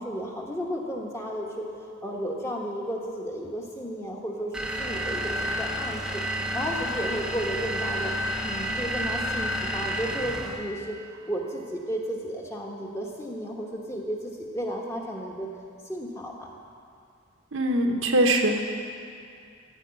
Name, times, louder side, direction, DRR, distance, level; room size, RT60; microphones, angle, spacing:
voice 1, 0.0-8.1 8.4-15.5 15.8-16.5, equal, 15° left, -1 dB, 1.1 m, -33 dB
sound 1, 4.5-10.7, equal, 5° right, 0.6 m, -30 dB
voice 2, 17.5-18.6, right 1 dB, 70° right, 3 dB, 1.0 m, -22 dB
14.5 x 4.9 x 8.2 m, 2.4 s
head